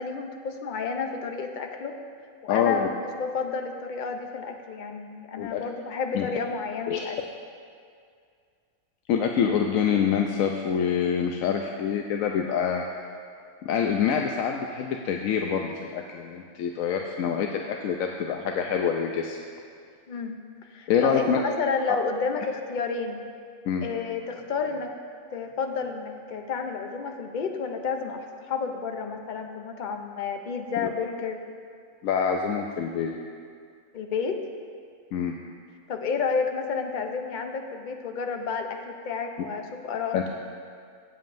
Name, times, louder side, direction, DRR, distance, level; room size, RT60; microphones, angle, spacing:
voice 1, 0.0-2.0 2.4-7.2 20.1-20.4 20.7-23.3 23.8-24.9 25.3-31.4 33.9-34.4 35.9-40.3, left 5 dB, 50° left, 4 dB, 0.6 m, -31 dB
voice 2, 2.5-2.9 5.4-5.6 6.1-6.3 6.9-7.0 9.1-12.8 13.6-19.4 20.9-21.4 21.9-22.0 23.7-23.9 32.0-33.2 35.1-35.3 40.1-40.2, left 7 dB, 70° left, 2 dB, 0.9 m, -26 dB
17.0 x 7.3 x 2.6 m, 2.2 s
omnidirectional pair, 1.5 m